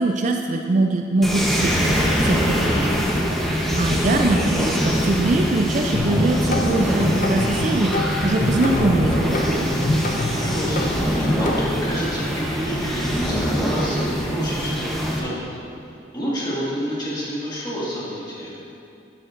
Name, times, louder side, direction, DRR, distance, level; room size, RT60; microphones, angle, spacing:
voice 1, 0.0-1.8 2.2-2.9 3.3-9.9, right 2 dB, 40° right, 4 dB, 0.4 m, -23 dB
sound 1, 1.2-15.2, equal, ahead, 0.8 m, -23 dB
voice 2, 2.6-3.1 10.4-11.5 11.8-15.5 16.1-18.6, equal, 25° left, -8 dB, 2.0 m, -29 dB
sound 2, 6.0-11.6, left 1 dB, 45° left, 0.8 m, -26 dB
11.5 x 7.7 x 2.5 m, 2.6 s
head